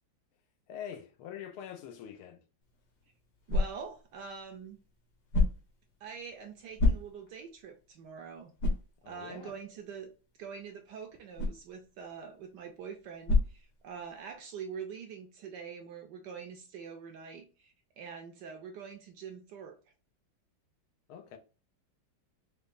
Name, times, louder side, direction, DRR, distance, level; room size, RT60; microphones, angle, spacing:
voice 1, 0.7-2.4 9.0-9.5 21.1-21.4, left 9 dB, 85° left, 1.6 m, -44 dB
sound 1, 2.6-14.4, left 3 dB, 60° left, 1.3 m, -34 dB
voice 2, 3.5-4.8 6.0-8.5 9.0-10.1 10.4-19.8, right 6 dB, 75° right, 1.0 m, -44 dB
5.2 x 2.2 x 2.5 m
omnidirectional pair, 2.2 m